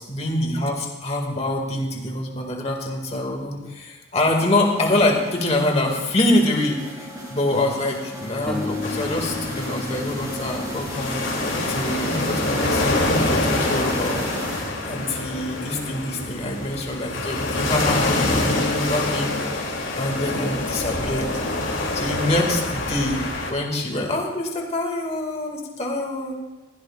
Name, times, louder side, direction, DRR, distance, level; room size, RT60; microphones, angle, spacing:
voice 1, 0.0-11.2 11.7-14.3 14.8-19.7 20.0-21.3 21.9-26.4, left 1 dB, 30° left, 1 dB, 2.1 m, -25 dB
sound 1, 4.4-15.1, equal, 15° right, 3.2 m, -35 dB
sound 2, 8.5-11.7, left 3 dB, 5° left, 0.8 m, -34 dB
sound 3, 8.8-23.5, left 2 dB, 70° left, 2.8 m, -26 dB
20.0 x 16.0 x 2.4 m, 1.2 s
head